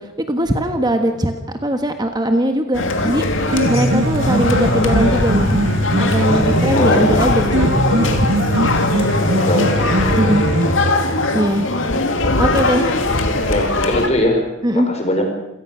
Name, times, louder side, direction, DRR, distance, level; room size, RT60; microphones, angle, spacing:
voice 1, 0.0-5.6 6.0-8.3 8.8-9.2 10.2-10.5 11.3-11.7 12.4-13.0 14.6-14.9, right 1 dB, 20° right, 6 dB, 1.4 m, -20 dB
sound 1, 2.7-14.1, left 2 dB, 65° left, 2.4 m, -20 dB
Piano, 3.3-11.3, right 1 dB, 65° right, 2.2 m, -20 dB
voice 2, 6.7-7.3 9.4-10.4 13.3-14.4 14.7-15.3, left 1 dB, 35° left, 4 dB, 4.9 m, -21 dB
27.5 x 18.5 x 6.3 m, 0.94 s
head